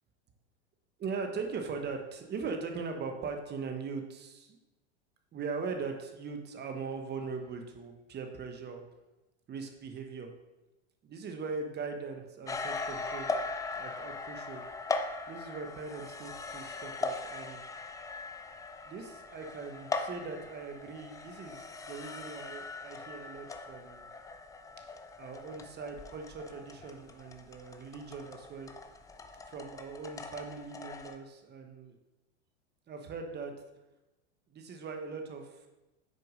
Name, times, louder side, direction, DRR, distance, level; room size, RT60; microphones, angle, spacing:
voice 1, 1.0-4.6 5.3-8.8 9.5-10.3 11.0-13.3 13.7-14.6 15.3-17.6 18.8-24.1 25.2-28.7 29.5-32.0 32.9-33.5 34.5-35.7, right 4 dB, 30° right, 4 dB, 1.1 m, -40 dB
sound 1, 12.5-31.2, left 3 dB, 10° left, 0.3 m, -40 dB
6.4 x 4.4 x 5.1 m, 1.0 s
hypercardioid pair, 110°, 35 cm